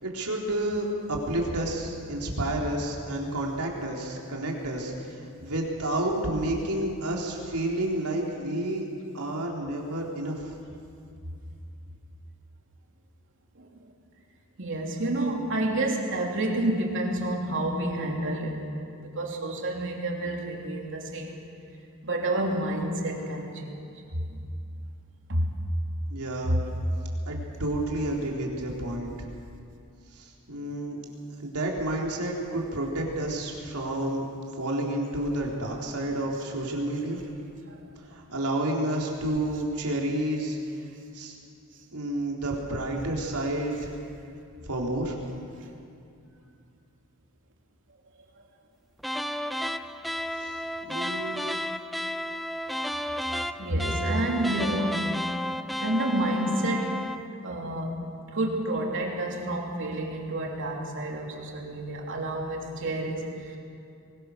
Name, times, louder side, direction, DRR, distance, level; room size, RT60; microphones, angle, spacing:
voice 1, 0.0-8.9 9.1-10.5 26.1-26.6 27.3-29.1 30.1-31.0 31.4-34.3 34.6-37.2 38.1-40.6 41.1-41.4 41.9-43.9 44.7-45.2 50.3-50.6 50.8-51.6, right 1 dB, 90° right, -1 dB, 3.9 m, -30 dB
voice 2, 14.6-18.6 19.0-21.4 22.0-23.9 25.3-25.5 53.6-55.2 55.8-57.0 57.4-57.9 58.3-63.6, right 1 dB, 60° right, 0 dB, 3.1 m, -29 dB
sound 1, 49.0-57.3, left 1 dB, ahead, 0.5 m, -32 dB
23.5 x 21.0 x 6.6 m, 2.5 s
head